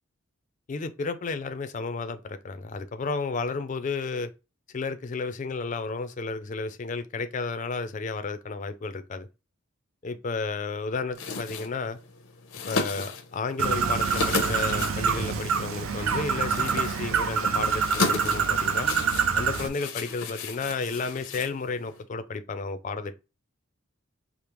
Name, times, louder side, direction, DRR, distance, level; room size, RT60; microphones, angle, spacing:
voice 1, 0.7-4.3 4.7-9.3 10.0-12.0 12.7-18.9 19.3-23.2, left 4 dB, 35° left, 0.4 m, -32 dB
sound 1, 11.1-22.0, left 4 dB, 90° left, 0.7 m, -35 dB
Bird, 13.6-19.7, right 6 dB, 80° right, 0.5 m, -26 dB
5.0 x 2.0 x 3.0 m
head